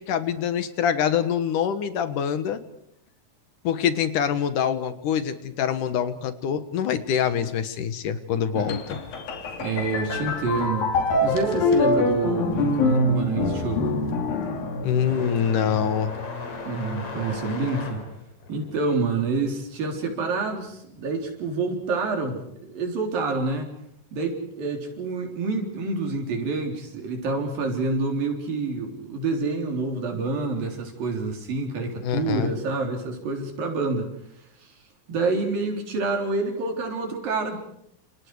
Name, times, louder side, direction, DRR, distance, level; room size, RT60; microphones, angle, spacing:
voice 1, 0.0-2.6 3.6-9.0 14.8-16.1 32.0-32.5, left 8 dB, 70° left, 11 dB, 2.9 m, -25 dB
sound 1, 8.7-15.4, left 2 dB, 90° left, 4.4 m, -24 dB
voice 2, 9.6-10.9 11.2-13.9 16.7-18.0 18.5-23.7 24.1-34.1 34.6-34.7 35.1-37.6, right 3 dB, 85° right, 3 dB, 5.6 m, -27 dB
sound 2, 13.9-21.3 21.6-22.7 23.7-23.8 24.6-24.7 26.4-26.5, left 3 dB, 45° left, 4.3 m, -38 dB
29.0 x 28.0 x 4.9 m, 0.73 s
omnidirectional pair, 4.0 m